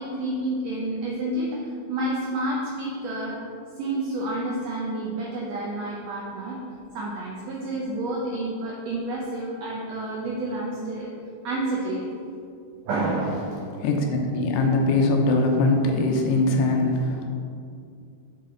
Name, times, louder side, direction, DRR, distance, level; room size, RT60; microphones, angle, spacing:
voice 1, 0.0-1.5 1.9-3.4 3.8-6.6 6.9-11.1 11.4-12.1 12.8-13.6, right 2 dB, 80° right, -3 dB, 1.5 m, -29 dB
voice 2, 13.8-17.3, left 2 dB, 80° left, 2 dB, 2.3 m, -22 dB
6.6 x 5.9 x 3.8 m, 2.3 s
omnidirectional pair, 3.9 m